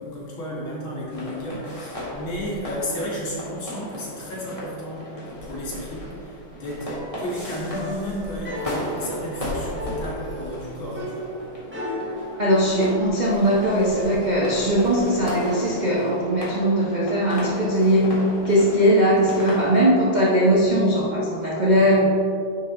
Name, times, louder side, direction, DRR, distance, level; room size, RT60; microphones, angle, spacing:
voice 1, 0.0-11.3, equal, 70° left, -6 dB, 2.6 m, -33 dB
sound 1, 1.1-20.2, left 1 dB, 15° left, 1.6 m, -35 dB
sound 2, 6.9-13.8, left 1 dB, 10° right, 0.5 m, -36 dB
voice 2, 12.4-22.1, equal, 70° right, -5 dB, 0.4 m, -20 dB
9.5 x 4.7 x 3.8 m, 2.6 s
omnidirectional pair, 2.3 m